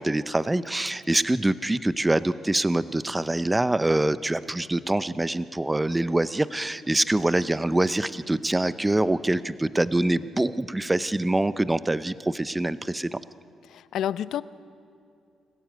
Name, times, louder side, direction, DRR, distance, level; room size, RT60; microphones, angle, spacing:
voice 1, 0.0-13.2, right 2 dB, 15° right, 15 dB, 0.6 m, -25 dB
voice 2, 13.7-14.4, left 10 dB, 75° left, 17 dB, 0.6 m, -29 dB
26.5 x 14.5 x 9.2 m, 2.5 s
cardioid pair, 90°, 0 cm